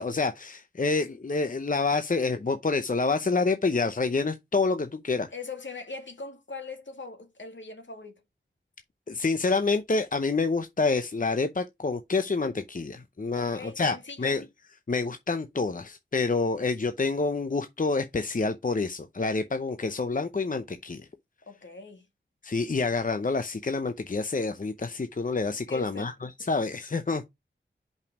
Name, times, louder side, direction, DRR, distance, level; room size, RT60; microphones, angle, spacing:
voice 1, 0.0-5.3 9.1-14.4 14.9-21.0 22.4-26.1 26.5-27.3, left 3 dB, 45° left, 0.7 m, -27 dB
voice 2, 5.3-8.2 13.4-14.4 21.5-22.1 25.7-26.1, left 3 dB, 75° left, 2.0 m, -41 dB
5.4 x 5.3 x 4.7 m
wide cardioid pair, 65°, 20 cm